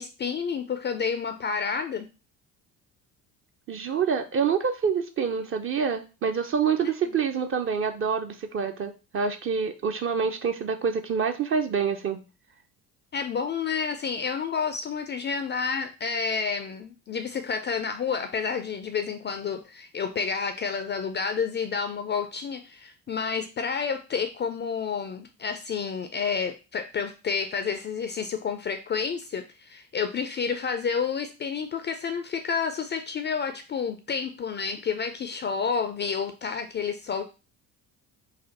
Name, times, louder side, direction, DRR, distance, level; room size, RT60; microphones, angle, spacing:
voice 1, 0.0-2.1 6.8-6.9 13.1-37.2, left 6 dB, 25° left, 8 dB, 0.4 m, -30 dB
voice 2, 3.7-12.2, right 6 dB, 30° right, 7 dB, 0.5 m, -27 dB
4.1 x 2.5 x 4.1 m, 0.31 s
figure-of-eight pair, 55°, 48 cm